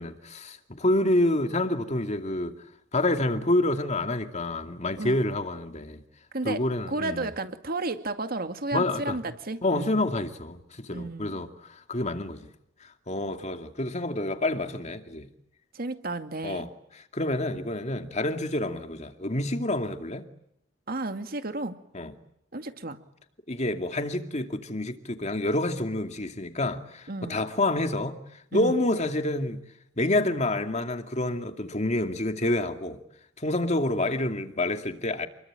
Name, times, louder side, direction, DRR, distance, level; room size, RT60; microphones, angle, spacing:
voice 1, 0.0-2.5 2.9-6.0 6.4-7.3 8.7-9.2 9.6-12.5 13.1-15.3 16.4-16.7 17.1-20.3 21.9-22.1 23.5-28.2 28.5-29.6 30.0-33.0 33.4-35.3, left 1 dB, 40° left, 2.5 m, -28 dB
voice 2, 6.9-10.0 10.9-11.4 15.7-16.7 20.9-21.7 22.5-23.0 27.1-27.4 28.5-28.8, right 2 dB, 55° right, 2.3 m, -32 dB
29.0 x 22.5 x 9.0 m
head